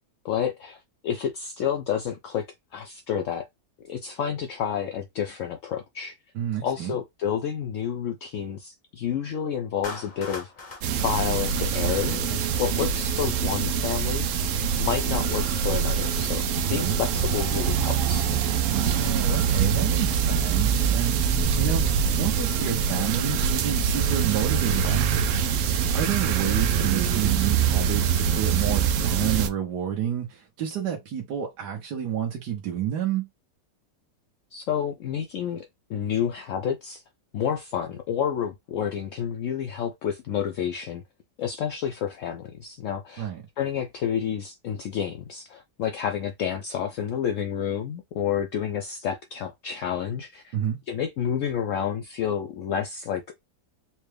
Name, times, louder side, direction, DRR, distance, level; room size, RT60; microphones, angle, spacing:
voice 1, 0.2-2.4 2.7-3.5 3.9-6.1 6.6-10.5 11.0-14.3 14.8-18.3 34.5-37.0 37.3-41.0 41.4-43.3 43.6-50.5 50.9-53.3, left 8 dB, 80° left, 0.7 m, -29 dB
voice 2, 6.3-6.9 16.5-17.0 18.7-21.2 21.6-21.8 22.2-25.5 25.9-33.3 43.2-43.4 50.5-50.8, right 9 dB, 70° right, 1.5 m, -30 dB
Clapping, 9.8-12.2, left 3 dB, 40° left, 0.6 m, -40 dB
sound 1, 10.8-29.5, right 7 dB, 90° right, 0.6 m, -24 dB
4.3 x 2.1 x 3.3 m
omnidirectional pair, 1.9 m